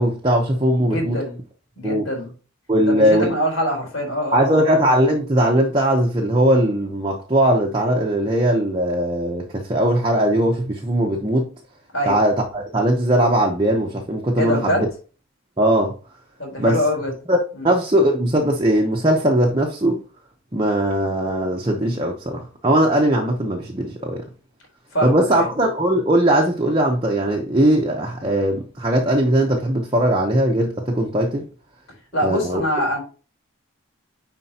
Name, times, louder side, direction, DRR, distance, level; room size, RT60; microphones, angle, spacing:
voice 1, 0.0-1.2 1.8-2.0 2.7-3.3 4.3-11.5 12.1-14.9 15.6-16.0 16.6-16.8 17.3-17.4 17.6-20.0 20.5-24.2 25.0-31.4 32.2-32.6, right 1 dB, 20° right, 0.9 m, -19 dB
voice 2, 0.8-1.4 1.8-2.3 2.8-4.6 11.9-12.2 14.4-14.8 16.4-17.1 17.6-17.7 24.9-25.5 32.1-33.0, equal, 65° left, 3.9 m, -24 dB
9.9 x 4.4 x 2.9 m
head